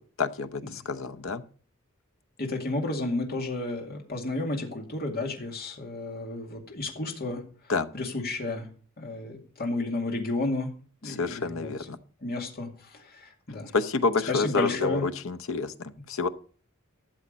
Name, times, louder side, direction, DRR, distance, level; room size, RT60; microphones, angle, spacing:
voice 1, 0.2-1.4 7.7-7.9 11.1-12.0 13.7-16.3, left 4 dB, 65° left, 11 dB, 0.9 m, -28 dB
voice 2, 2.4-7.4 7.9-8.7 9.0-10.7 11.0-11.7 12.2-13.7 14.3-15.1, left 2 dB, 45° left, 2 dB, 2.3 m, -32 dB
13.0 x 7.3 x 5.2 m, 0.42 s
head